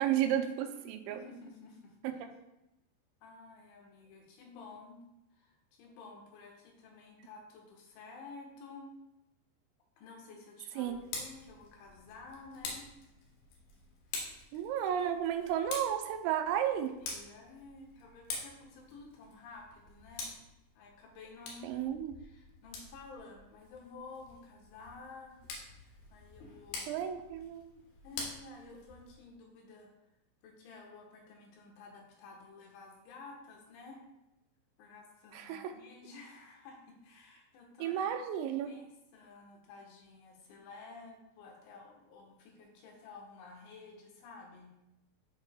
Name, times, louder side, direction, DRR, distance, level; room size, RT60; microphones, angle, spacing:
voice 1, 0.0-1.2 2.0-2.1 10.8-11.0 14.5-16.9 21.6-22.1 26.9-27.7 35.3-35.7 37.8-38.7, right 10 dB, 85° right, 6 dB, 2.9 m, -33 dB
voice 2, 1.1-2.3 3.2-5.0 5.3-8.9 10.0-12.9 16.8-20.3 20.8-21.8 22.2-25.4 25.8-27.1 28.0-29.9 30.4-34.0 34.8-38.0 38.6-38.8 39.1-44.7, left 3 dB, 85° left, 0 dB, 3.6 m, -52 dB
Tick, 10.8-29.2, left 3 dB, 70° left, 3.1 m, -47 dB
12.0 x 4.7 x 2.2 m, 0.90 s
omnidirectional pair, 5.3 m